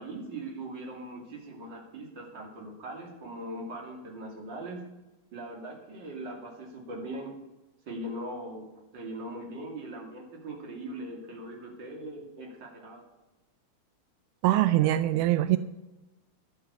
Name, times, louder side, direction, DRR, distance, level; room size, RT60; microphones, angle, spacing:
voice 1, 0.0-4.9 5.3-7.4 7.9-13.1, right 1 dB, 35° right, 0 dB, 2.9 m, -40 dB
voice 2, 14.4-15.6, right 14 dB, 85° right, 12 dB, 2.0 m, -23 dB
11.5 x 8.9 x 6.8 m, 1.0 s
omnidirectional pair, 3.6 m